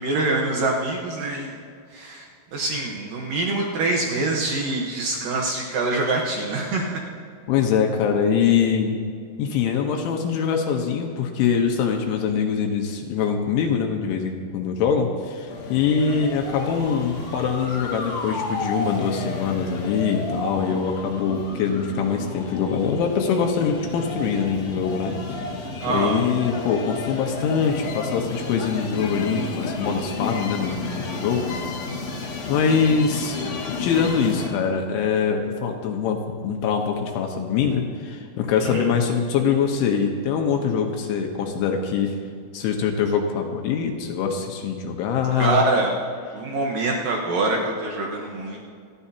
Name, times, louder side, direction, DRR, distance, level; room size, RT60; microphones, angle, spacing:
voice 1, 0.0-1.6 1.9-7.0 16.0-16.2 25.8-26.2 38.6-38.9 45.4-45.9 46.3-48.7, right 2 dB, 75° right, -1 dB, 2.0 m, -25 dB
voice 2, 7.5-9.0 9.4-25.1 25.9-31.7 32.5-33.4 33.8-42.2 42.5-45.6, left 6 dB, 75° left, 3 dB, 3.3 m, -23 dB
sound 1, 15.5-34.5, left 3 dB, 60° left, 1.7 m, -32 dB
27.0 x 11.0 x 2.8 m, 2.3 s
omnidirectional pair, 5.7 m